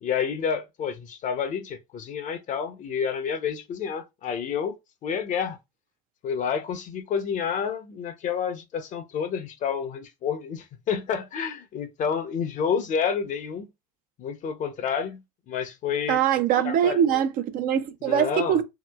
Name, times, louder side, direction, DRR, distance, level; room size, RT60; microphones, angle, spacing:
voice 1, 0.0-4.8 5.0-5.6 6.2-13.7 14.2-15.2 15.5-16.2 16.6-17.2 18.0-18.6, left 7 dB, 45° left, 0.7 m, -29 dB
voice 2, 16.1-18.6, right 9 dB, 55° right, 0.5 m, -23 dB
2.9 x 2.8 x 2.3 m
supercardioid pair, 100°, 18 cm